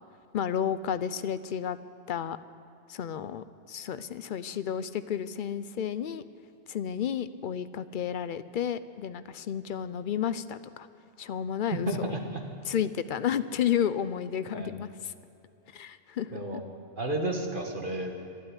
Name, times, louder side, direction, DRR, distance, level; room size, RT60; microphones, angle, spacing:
voice 1, 0.3-1.8 2.1-2.4 2.9-6.2 6.7-10.9 11.2-12.1 12.6-15.1 15.7-16.6, left 9 dB, 60° left, 14 dB, 0.6 m, -32 dB
voice 2, 11.7-12.4 14.5-14.7 16.3-16.6 17.0-18.1, right 1 dB, 45° right, 2 dB, 1.8 m, -32 dB
12.0 x 12.0 x 9.7 m, 2.8 s
omnidirectional pair, 1.2 m